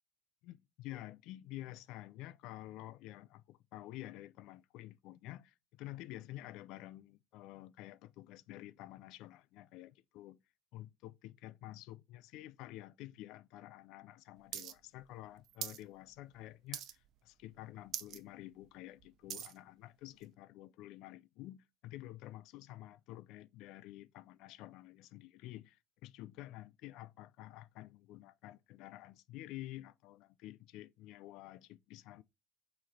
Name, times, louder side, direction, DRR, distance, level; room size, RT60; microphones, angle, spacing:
voice 1, 0.4-10.4 10.7-32.2, left 15 dB, 75° left, 0.3 m, -50 dB
sound 1, 14.5-14.7 15.0-15.8 16.2-16.4 16.7-17.2 17.5-17.6 17.9-18.2 18.6-19.6 20.2-20.3, right 10 dB, 55° right, 0.6 m, -42 dB
7.1 x 3.1 x 4.2 m
cardioid pair, 130°, 0 cm